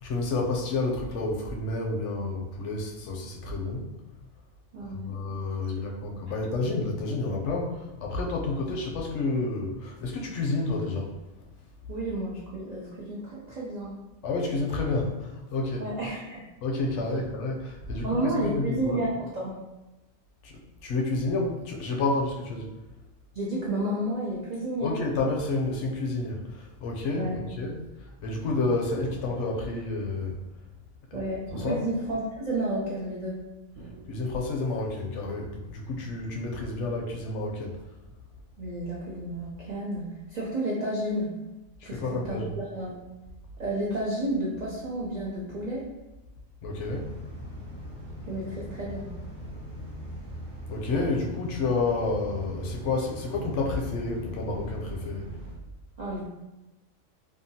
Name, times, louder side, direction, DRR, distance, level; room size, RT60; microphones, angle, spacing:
voice 1, 0.0-3.9 4.9-11.1 14.2-15.9 16.6-19.0 20.4-22.7 24.8-27.8 28.2-30.4 31.1-31.2 31.6-31.8 34.1-37.8 41.8-42.6 46.6-47.2 50.7-55.3, left 3 dB, 70° left, 0 dB, 0.8 m, -30 dB
voice 2, 4.7-5.1 11.9-14.0 15.8-16.5 18.0-19.6 23.3-25.0 27.1-27.4 31.1-33.4 38.6-41.3 41.8-43.0 43.6-45.9 48.3-49.1 56.0-56.3, right 1 dB, 70° right, -6 dB, 0.4 m, -31 dB
sound 1, 29.0-29.8 31.5-32.3 33.7-34.5 35.9-36.4 38.0-38.1, right 1 dB, 90° right, 1.2 m, -44 dB
sound 2, 46.8-55.6, equal, 50° right, 1.1 m, -40 dB
2.7 x 2.3 x 2.7 m, 1.0 s
omnidirectional pair, 1.4 m